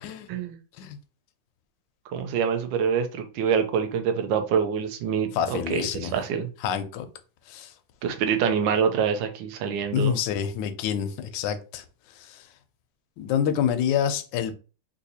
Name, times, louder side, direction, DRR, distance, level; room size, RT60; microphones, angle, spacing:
voice 1, 2.1-6.5 8.0-10.1, right 7 dB, 75° right, 1.3 m, -26 dB
voice 2, 5.3-6.1 6.6-7.1 7.5-7.7 9.9-11.8 12.2-12.4 13.2-14.5, left 8 dB, 75° left, 1.1 m, -27 dB
3.9 x 2.6 x 2.7 m
omnidirectional pair, 2.2 m